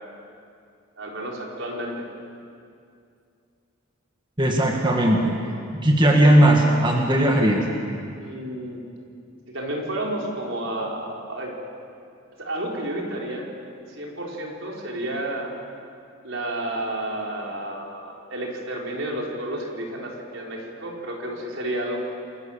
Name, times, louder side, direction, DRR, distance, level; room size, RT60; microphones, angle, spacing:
voice 1, 1.0-2.1 8.2-8.8 9.5-11.5 12.4-13.4 13.9-15.5 16.2-22.0, right 1 dB, 70° right, -1 dB, 4.9 m, -31 dB
voice 2, 4.4-5.5 5.8-7.6, right 1 dB, 25° right, 0 dB, 2.1 m, -18 dB
28.5 x 22.5 x 7.5 m, 2.4 s
head